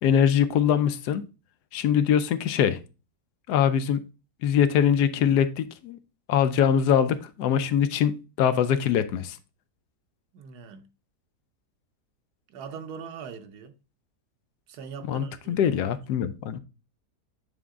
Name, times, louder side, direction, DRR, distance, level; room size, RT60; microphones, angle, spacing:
voice 1, 0.0-1.2 1.7-2.8 3.5-4.0 4.4-6.0 6.3-8.1 8.4-9.4 15.1-16.6, left 8 dB, 90° left, 1.2 m, -23 dB
voice 2, 10.3-10.9 12.5-13.8 14.7-15.9, right 6 dB, 80° right, 1.3 m, -41 dB
8.3 x 3.6 x 3.6 m
omnidirectional pair, 1.7 m